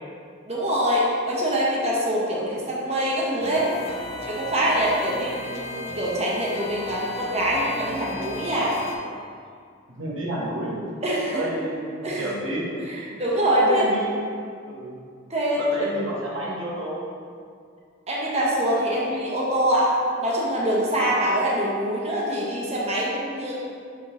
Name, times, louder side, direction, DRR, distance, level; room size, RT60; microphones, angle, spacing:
voice 1, 0.5-3.7 4.2-8.8 11.0-11.4 12.0-12.3 12.9-13.8 15.3-15.6 18.1-19.9 20.2-23.5, equal, 30° right, -5 dB, 1.0 m, -24 dB
sound 1, 3.4-9.0, left 1 dB, 30° left, 0.6 m, -36 dB
voice 2, 9.9-10.8 11.3-12.8 13.5-14.2 14.6-15.0 15.6-17.0, right 1 dB, 70° right, -5 dB, 1.3 m, -30 dB
6.8 x 3.9 x 3.8 m, 2.2 s
head